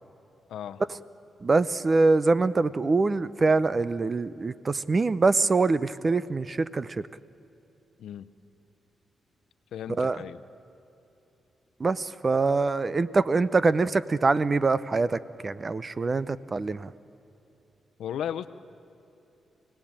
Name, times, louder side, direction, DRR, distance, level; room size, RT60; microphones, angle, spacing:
voice 1, 0.5-0.8 8.0-8.3 9.7-10.4 18.0-18.5, left 9 dB, 85° left, 11 dB, 0.8 m, -35 dB
voice 2, 1.4-7.0 10.0-10.2 11.8-16.9, right 3 dB, 35° right, 16 dB, 0.7 m, -24 dB
28.0 x 18.0 x 8.9 m, 2.9 s
cardioid pair, 80°, 0 cm